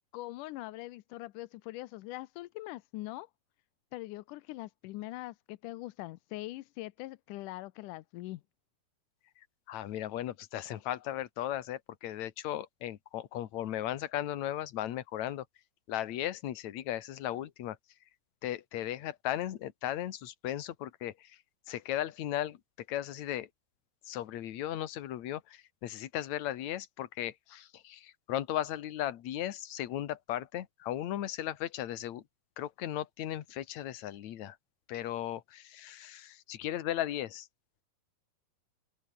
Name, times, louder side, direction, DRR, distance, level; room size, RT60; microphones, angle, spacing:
voice 1, 0.1-3.3 3.9-8.4, left 18 dB, 90° left, 1.8 m, -42 dB
voice 2, 9.7-15.5 15.9-17.8 18.4-21.4 21.7-22.6 22.9-23.5 24.0-32.2 32.6-34.6 34.9-37.5, left 12 dB, 60° left, 2.2 m, -36 dB
open air
omnidirectional pair, 4.6 m